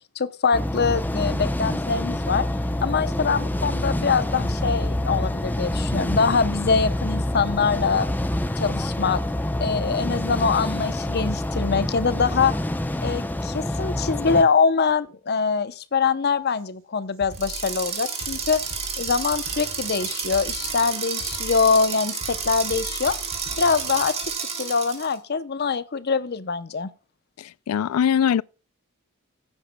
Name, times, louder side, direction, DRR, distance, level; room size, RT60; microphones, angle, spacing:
voice 1, 0.2-2.5 2.8-8.1 8.6-9.2 9.6-12.5 13.0-18.6 19.0-23.2 23.6-26.9, left 5 dB, 50° left, 0.7 m, -23 dB
sound 1, 0.5-14.4, left 1 dB, 10° left, 0.6 m, -26 dB
Drum kit, 16.5-16.6 17.1-24.3, equal, 65° right, 3.7 m, -42 dB
sound 2, 17.3-25.1, right 6 dB, 30° right, 2.1 m, -31 dB
voice 2, 27.4-28.4, left 8 dB, 80° left, 0.3 m, -22 dB
15.5 x 9.0 x 2.2 m
head